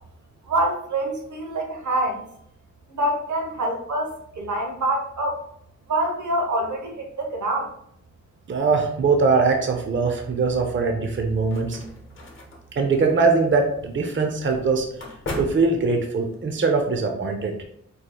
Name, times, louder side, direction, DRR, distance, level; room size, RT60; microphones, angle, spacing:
voice 1, 0.4-2.2 2.9-5.4 5.9-7.7, right 1 dB, 85° right, 1 dB, 1.0 m, -26 dB
voice 2, 8.5-11.8 12.8-14.9 15.4-17.5, right 4 dB, 40° right, 3 dB, 0.6 m, -21 dB
sound 1, 11.0-16.4, left 2 dB, 45° left, 1.0 m, -39 dB
5.0 x 4.4 x 2.3 m, 0.71 s
wide cardioid pair, 130°, 29 cm